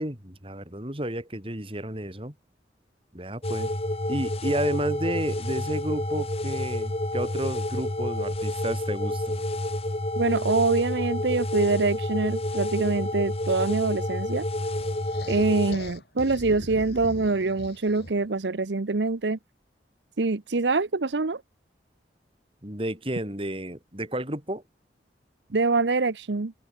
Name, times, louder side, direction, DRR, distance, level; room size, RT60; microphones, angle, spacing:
voice 1, 0.0-2.3 3.1-3.7 4.1-9.4 22.6-24.6, right 1 dB, 30° right, 4.5 m, -31 dB
sound 1, 3.4-15.7, left 1 dB, 35° left, 2.1 m, -29 dB
voice 2, 10.2-14.4 15.3-19.4 20.2-21.4 25.5-26.5, right 3 dB, 80° right, 0.9 m, -25 dB
sound 2, 14.8-18.3, left 1 dB, 65° left, 7.3 m, -41 dB
head